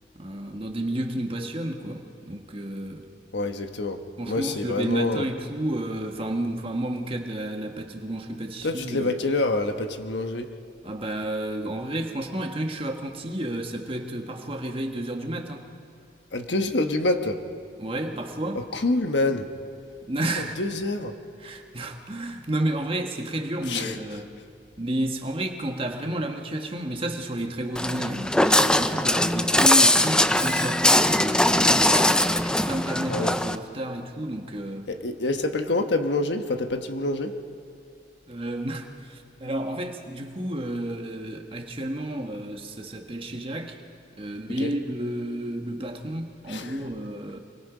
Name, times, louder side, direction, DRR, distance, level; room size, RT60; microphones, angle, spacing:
voice 1, 0.2-3.0 4.2-9.1 10.8-15.6 17.8-18.6 20.1-20.6 21.4-24.3 24.8-32.2 32.6-34.9 38.3-43.8 44.2-47.4, right 1 dB, 30° right, 3 dB, 1.4 m, -31 dB
voice 2, 3.3-5.3 8.6-10.5 16.3-17.4 18.7-19.5 20.6-21.1 23.7-24.0 33.1-33.4 34.9-37.4 44.6-44.7 46.5-46.8, left 2 dB, 85° left, 6 dB, 1.3 m, -26 dB
Walk footsteps, 27.8-33.6, left 1 dB, 5° left, 0.5 m, -21 dB
25.0 x 23.0 x 5.1 m, 2.5 s
head